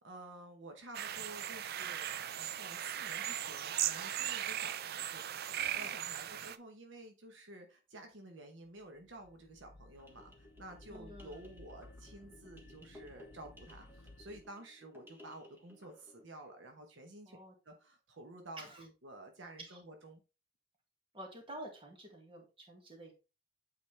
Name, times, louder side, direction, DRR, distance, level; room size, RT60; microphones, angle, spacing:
voice 1, 0.0-17.4 17.6-20.2, right 1 dB, 70° right, 1.1 m, -52 dB
sound 1, 0.9-6.6, right 10 dB, 55° right, 0.5 m, -38 dB
sound 2, 8.8-14.4, left 2 dB, 60° left, 0.9 m, -57 dB
sound 3, 9.9-16.2, left 1 dB, 10° right, 1.5 m, -59 dB
voice 2, 10.9-11.5 17.2-17.5 18.6-18.8 19.6-19.8 21.1-23.1, right 1 dB, 30° right, 2.0 m, -49 dB
8.5 x 4.1 x 3.3 m
head